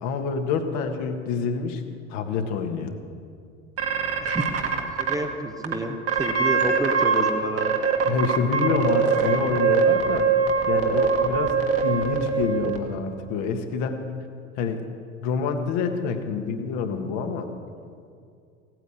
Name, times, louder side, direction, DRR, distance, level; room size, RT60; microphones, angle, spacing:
voice 1, 0.0-1.8 2.1-2.9 8.0-10.3 10.7-14.0 14.5-14.8 15.2-17.5, left 5 dB, 45° left, 5 dB, 1.6 m, -27 dB
sound 1, 3.8-5.1 5.6-5.7 6.1-7.3 7.6-12.8, right 6 dB, 35° right, 2.0 m, -22 dB
voice 2, 4.2-7.8, right 1 dB, 10° right, 5 dB, 1.1 m, -30 dB
17.0 x 9.5 x 8.2 m, 2.3 s
figure-of-eight pair, 70°, 39 cm